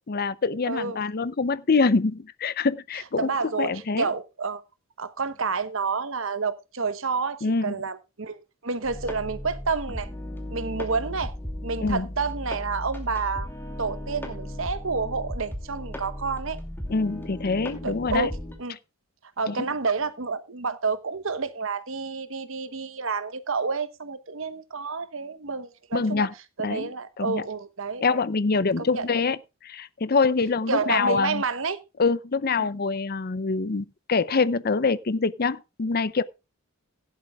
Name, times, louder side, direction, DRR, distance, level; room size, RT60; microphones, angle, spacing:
voice 1, 0.1-3.3 3.6-4.1 7.4-7.8 11.8-12.1 16.9-18.3 19.5-19.6 25.9-26.3 26.6-26.9 27.2-27.4 28.0-29.4 29.6-31.4 32.0-36.2, left 4 dB, 45° left, 0.6 m, -25 dB
voice 2, 0.6-1.0 3.2-4.6 5.0-10.1 10.5-11.3 11.6-13.5 13.8-16.6 17.8-18.3 18.6-18.8 19.4-26.3 26.6-28.2 28.8-29.0 30.7-32.1, right 4 dB, 65° right, 1.1 m, -29 dB
sound 1, 8.8-18.6, left 1 dB, 10° left, 2.5 m, -36 dB
16.5 x 11.0 x 2.4 m
head